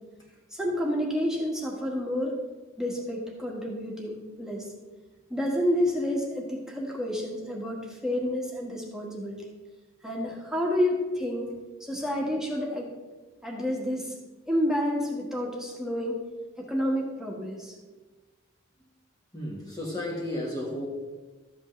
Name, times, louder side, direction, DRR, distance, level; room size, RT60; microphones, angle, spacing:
voice 1, 0.5-2.4 2.8-4.7 5.3-9.4 10.0-11.5 11.8-12.9 13.4-14.1 14.5-16.2 16.6-17.7, equal, 5° right, -2 dB, 1.6 m, -29 dB
voice 2, 19.3-20.9, left 1 dB, 20° left, -2 dB, 1.4 m, -33 dB
13.5 x 8.3 x 3.2 m, 1.2 s
head